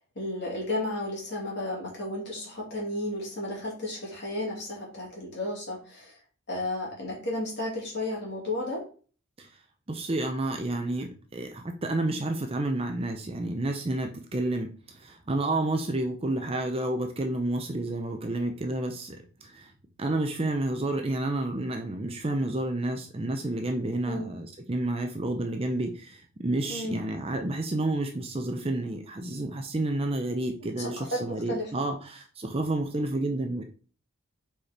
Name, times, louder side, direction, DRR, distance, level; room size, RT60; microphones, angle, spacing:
voice 1, 0.2-6.2 6.5-8.8 24.1-24.3 26.7-27.0 30.8-31.7, left 1 dB, 55° left, -3 dB, 2.8 m, -33 dB
voice 2, 9.9-19.7 20.0-33.6, right 2 dB, 30° right, 4 dB, 0.6 m, -30 dB
4.9 x 4.6 x 4.3 m, 0.39 s
head